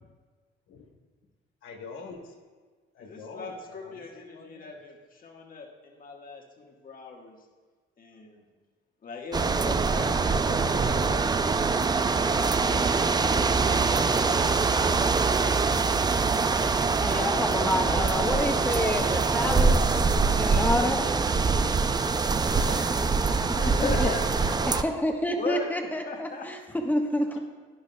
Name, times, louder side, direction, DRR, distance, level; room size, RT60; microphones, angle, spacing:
voice 1, 1.6-2.4 2.9-4.8 9.8-11.5 12.1-14.3 21.9-24.1 24.4-24.9, left 4 dB, 85° left, 1 dB, 1.2 m, -45 dB
voice 2, 3.0-7.4 8.0-8.5 9.0-11.1 17.3-18.1 23.7-24.2 25.3-25.7 26.0-26.5, left 4 dB, 45° left, 1 dB, 1.5 m, -38 dB
sound 1, 9.3-24.8, right 4 dB, 20° right, 0.4 m, -24 dB
voice 3, 17.0-21.1 23.8-24.1 24.7-26.6 26.8-27.4, left 1 dB, 10° left, 3 dB, 1.2 m, -28 dB
11.0 x 10.5 x 2.3 m, 1.4 s
cardioid pair, 90°, 20 cm